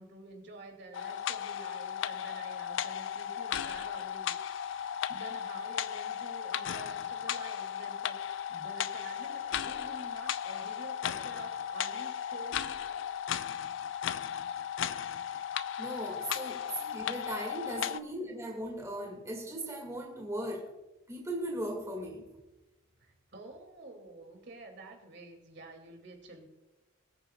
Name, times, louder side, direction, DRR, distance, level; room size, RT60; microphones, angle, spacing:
voice 1, 0.0-8.2 8.5-12.9 16.5-16.8 17.9-18.0 23.0-26.5, right 2 dB, 55° right, 3 dB, 2.4 m, -49 dB
sound 1, 0.9-18.0, left 9 dB, 65° left, 0.4 m, -36 dB
voice 2, 15.8-20.7 21.1-22.2, right 1 dB, 15° right, -1 dB, 2.0 m, -38 dB
22.5 x 9.1 x 2.3 m, 1.0 s
head